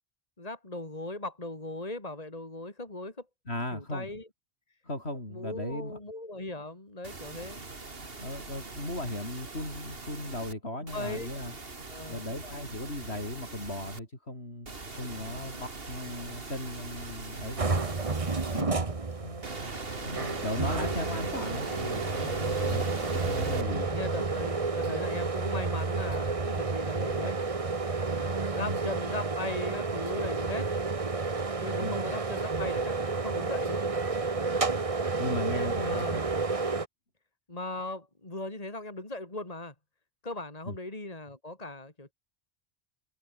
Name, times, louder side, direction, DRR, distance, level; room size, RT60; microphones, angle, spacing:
voice 1, 0.4-3.3 3.7-4.3 5.3-7.6 10.8-11.3 11.9-12.3 15.3-15.7 18.6-19.0 22.6-23.0 23.9-27.4 28.0-30.7 31.6-33.8 35.8-36.2 37.5-39.7 40.2-42.1, left 2 dB, 35° left, 3.3 m, -39 dB
voice 2, 3.5-4.1 4.8-6.0 8.2-11.5 12.1-14.7 15.0-17.9 18.5-18.8 19.2-19.4 20.0-22.8 23.1-23.9 28.6-28.8 31.8-32.0 35.2-36.2 40.7-40.8, left 1 dB, 70° left, 8.0 m, -37 dB
sound 1, 7.0-10.5 10.9-14.0 14.7-18.6 19.4-23.6, right 3 dB, 60° right, 2.7 m, -41 dB
sound 2, 17.6-36.9, right 4 dB, 30° right, 1.3 m, -30 dB
omnidirectional pair, 1.1 m